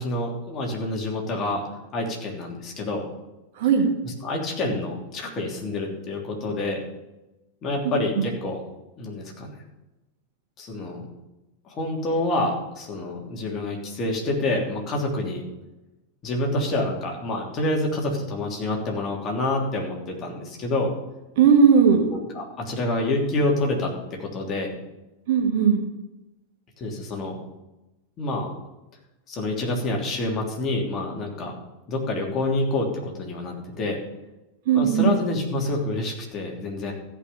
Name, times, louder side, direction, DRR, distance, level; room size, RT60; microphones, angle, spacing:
voice 1, 0.0-1.7 1.9-3.0 4.0-6.8 7.6-8.6 9.0-9.6 10.6-11.1 11.6-15.5 16.2-20.9 22.1-24.7 26.8-27.4 28.2-28.5 29.3-31.5 31.9-34.0 34.7-36.9, left 2 dB, 30° left, 0 dB, 3.1 m, -27 dB
voice 2, 21.4-22.0 25.3-25.8 34.7-35.2, right 6 dB, 55° right, 3 dB, 1.9 m, -17 dB
14.5 x 5.7 x 7.1 m, 1.0 s
figure-of-eight pair, 90°, 0 cm